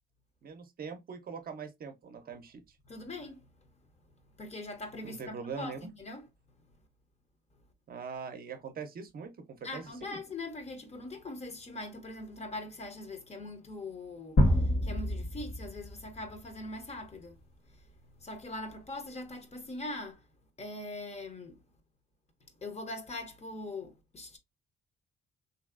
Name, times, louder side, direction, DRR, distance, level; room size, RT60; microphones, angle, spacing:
voice 1, 0.4-2.8 5.0-5.8 7.9-10.2, right 5 dB, 50° right, 0.6 m, -42 dB
voice 2, 2.9-3.5 4.4-6.3 9.6-17.4 17.7-17.8 18.2-20.2 20.6-21.6 22.6-24.4, left 2 dB, 35° left, 0.8 m, -42 dB
sound 1, 14.4-16.3, equal, 50° left, 1.2 m, -27 dB
3.0 x 2.7 x 2.3 m
cardioid pair, 90°, 20 cm